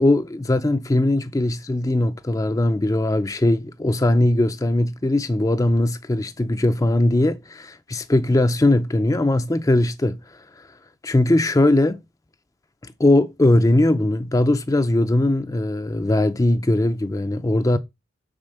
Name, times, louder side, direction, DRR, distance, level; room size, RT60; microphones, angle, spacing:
voice 1, 0.0-10.7 11.0-12.0 12.8-17.8, left 1 dB, 15° left, 0.4 m, -20 dB
7.3 x 4.1 x 6.6 m
head